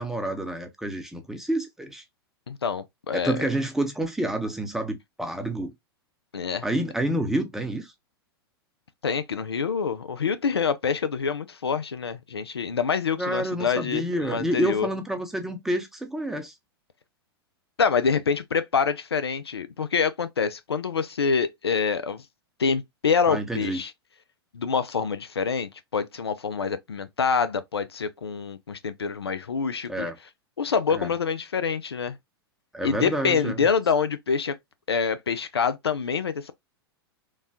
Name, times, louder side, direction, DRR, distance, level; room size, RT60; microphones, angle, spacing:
voice 1, 0.0-2.0 3.1-5.7 6.6-7.9 13.2-16.5 23.3-23.8 29.9-30.2 30.9-31.1 32.7-33.7, right 1 dB, 5° right, 0.6 m, -28 dB
voice 2, 2.5-3.5 6.3-6.7 9.0-14.9 17.8-22.2 22.6-23.9 24.5-30.1 30.6-32.2 32.8-34.6 34.9-36.5, left 6 dB, 85° left, 0.4 m, -26 dB
3.2 x 2.2 x 2.6 m
figure-of-eight pair, 100°, 13 cm